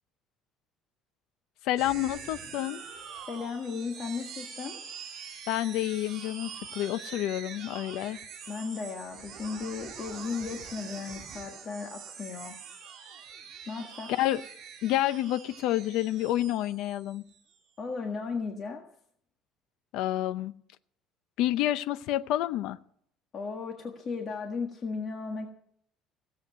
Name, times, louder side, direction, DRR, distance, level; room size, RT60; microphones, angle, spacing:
voice 1, 1.6-2.8 5.5-8.2 14.2-14.4 14.8-17.2 19.9-20.5 21.4-22.8, left 14 dB, 75° left, 13 dB, 0.6 m, -29 dB
sound 1, 1.8-17.6, right 7 dB, 50° right, 3.2 m, -45 dB
voice 2, 3.3-4.8 8.5-12.5 13.7-14.1 17.8-18.8 23.3-25.5, left 5 dB, 35° left, 2 dB, 1.6 m, -35 dB
17.0 x 7.9 x 8.0 m, 0.65 s
cardioid pair, 155°, 0 cm